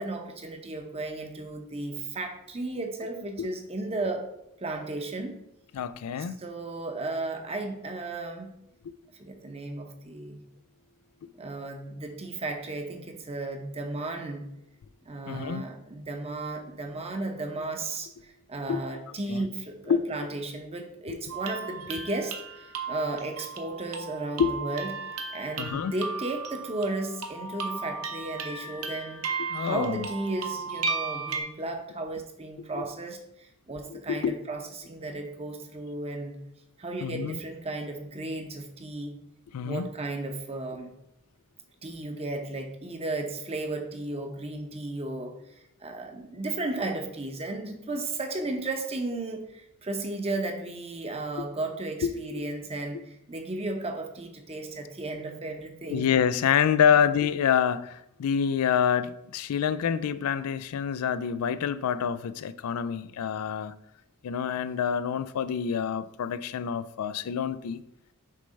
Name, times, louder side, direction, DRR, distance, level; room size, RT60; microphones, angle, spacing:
voice 1, 0.0-4.2 4.6-5.4 6.4-8.5 9.2-10.4 11.4-14.5 15.0-24.9 25.3-29.2 29.6-36.4 36.8-39.1 39.6-40.9 41.8-45.5 45.8-56.0 56.8-56.9, right 2 dB, 25° right, 0.8 m, -34 dB
voice 2, 5.8-6.4 15.3-15.6 18.7-18.8 19.3-19.5 19.9-20.0 24.4-24.5 25.6-25.9 29.5-30.1 32.7-32.8 33.9-34.4 37.0-37.4 39.5-39.9 52.1-52.4 55.9-63.7 64.2-67.8, left 8 dB, 85° left, 0.4 m, -27 dB
sound 1, 21.3-31.4, right 4 dB, 70° right, 0.8 m, -35 dB
6.6 x 3.2 x 5.2 m
head